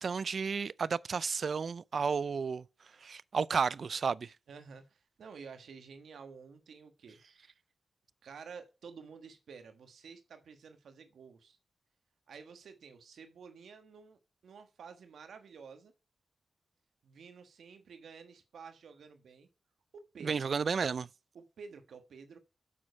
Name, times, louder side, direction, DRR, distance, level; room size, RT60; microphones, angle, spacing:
voice 1, 0.0-2.6 3.0-4.3 20.2-21.1, right 5 dB, 65° right, 0.4 m, -32 dB
voice 2, 4.5-7.2 8.2-11.6 12.3-15.9 17.0-19.5 19.9-20.4 21.3-22.4, right 5 dB, 90° right, 1.4 m, -51 dB
7.6 x 6.3 x 5.3 m
cardioid pair, 75°, 0 cm